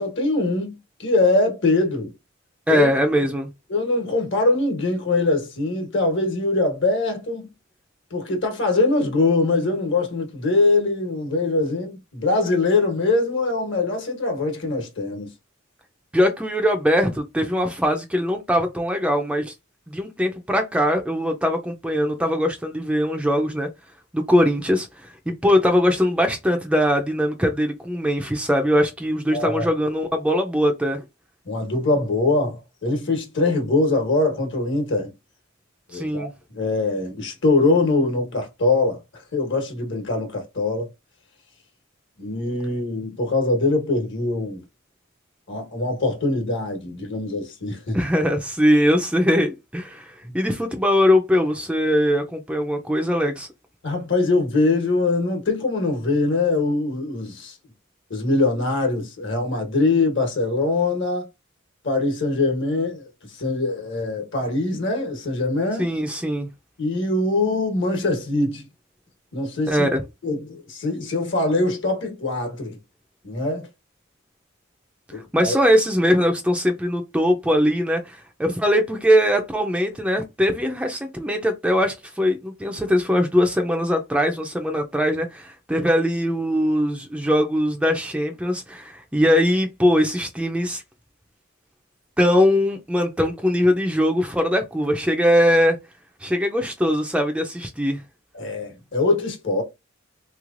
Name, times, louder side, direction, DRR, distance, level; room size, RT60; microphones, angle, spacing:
voice 1, 0.0-2.1 2.7-2.9 3.7-7.5 8.1-15.3 29.3-29.6 31.5-35.1 35.9-39.0 39.3-40.9 42.2-44.6 45.5-48.0 50.2-50.3 53.8-57.6 58.1-61.3 61.8-65.9 66.8-68.6 69.3-69.9 70.2-72.8 73.2-73.7 75.1-75.6 98.3-99.6, left 2 dB, 60° left, 1.2 m, -23 dB
voice 2, 2.7-3.5 16.1-19.5 19.9-23.7 24.1-31.0 35.9-36.3 47.9-53.5 65.8-66.5 69.7-70.0 75.3-90.8 92.2-95.8 96.2-98.0, equal, 5° right, 0.4 m, -21 dB
3.6 x 3.1 x 2.5 m
head